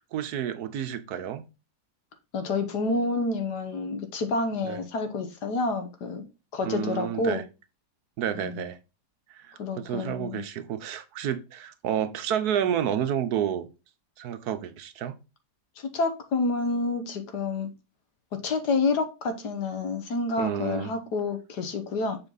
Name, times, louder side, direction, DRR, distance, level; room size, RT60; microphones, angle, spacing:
voice 1, 0.1-1.4 4.6-4.8 6.6-7.4 8.2-8.8 9.3-13.7 14.2-15.1 20.4-20.9, right 9 dB, 75° right, 1.3 m, -30 dB
voice 2, 2.3-6.3 6.5-7.4 8.3-8.6 9.6-10.4 15.8-17.7 18.3-22.2, left 3 dB, 85° left, 1.7 m, -28 dB
7.1 x 4.4 x 3.9 m
omnidirectional pair, 1.7 m